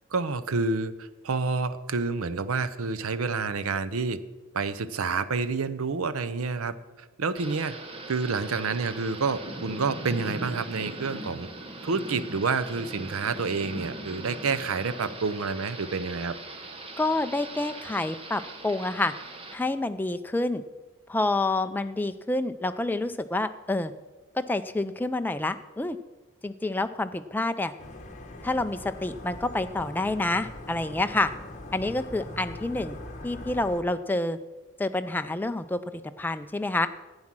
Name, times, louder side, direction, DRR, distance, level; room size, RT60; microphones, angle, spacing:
voice 1, 0.1-4.2 4.5-7.8 8.1-11.5 11.8-16.3, right 4 dB, 80° right, 14 dB, 0.6 m, -29 dB
Thunder / Rain, 7.4-19.5, right 2 dB, 25° right, 1.0 m, -40 dB
voice 2, 17.0-19.1 19.5-20.6 21.1-23.9 24.3-26.0 26.4-27.7 28.4-31.3 31.7-33.0 33.2-34.4 34.8-35.8 36.2-36.9, left 2 dB, 10° left, 9 dB, 0.3 m, -28 dB
sound 1, 27.8-33.8, left 1 dB, 35° left, 1.1 m, -42 dB
11.0 x 8.8 x 6.0 m, 1.2 s
head